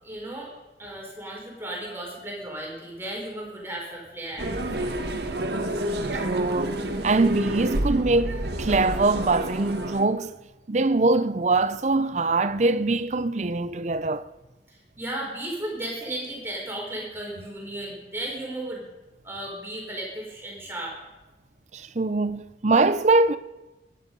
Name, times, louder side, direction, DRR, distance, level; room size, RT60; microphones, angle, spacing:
voice 1, 0.0-0.5 0.8-4.5 14.7-18.9 19.2-20.9, right 1 dB, 15° right, 4.6 m, -35 dB
sound 1, 4.4-10.1, right 1 dB, 65° right, 1.6 m, -29 dB
voice 2, 6.2-10.4 10.7-14.3 21.7-23.4, right 3 dB, 40° right, 0.6 m, -23 dB
22.5 x 10.0 x 5.4 m
head